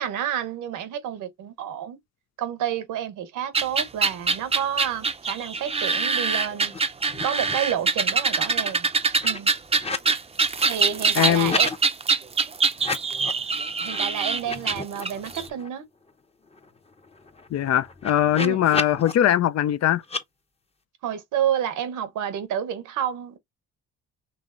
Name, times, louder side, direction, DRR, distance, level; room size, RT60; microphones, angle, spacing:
voice 1, 0.0-2.0 2.4-6.7 7.2-8.9 9.2-9.5 10.7-11.7 13.8-15.8 18.4-18.6 21.0-23.4, right 9 dB, 85° right, 1.1 m, -29 dB
sound 1, 3.5-15.4, right 4 dB, 20° right, 0.5 m, -24 dB
sound 2, 6.7-6.8 7.1-7.7 8.1-10.1 10.4-11.8 12.7-13.5 13.9-14.0 14.4-15.7 16.1-16.2 16.4-19.1 20.0-20.2, left 3 dB, 20° left, 0.8 m, -34 dB
voice 2, 11.2-11.5 17.5-20.0, left 11 dB, 60° left, 0.5 m, -21 dB
5.3 x 3.1 x 2.5 m
cardioid pair, 90°, 30 cm